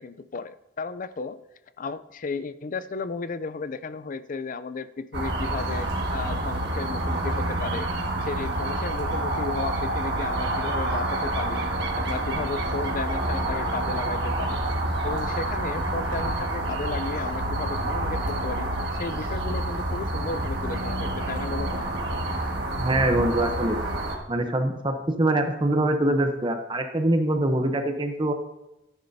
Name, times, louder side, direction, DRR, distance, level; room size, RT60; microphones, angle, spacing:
voice 1, 0.0-1.4 1.8-7.9 8.2-14.6 15.0-21.9, left 4 dB, 40° left, 14 dB, 0.4 m, -34 dB
sound 1, 5.1-24.2, right 1 dB, 55° right, 1.7 m, -28 dB
voice 2, 22.8-23.8 24.3-28.3, right 1 dB, 25° right, 6 dB, 0.8 m, -24 dB
12.5 x 10.5 x 2.7 m, 0.93 s
head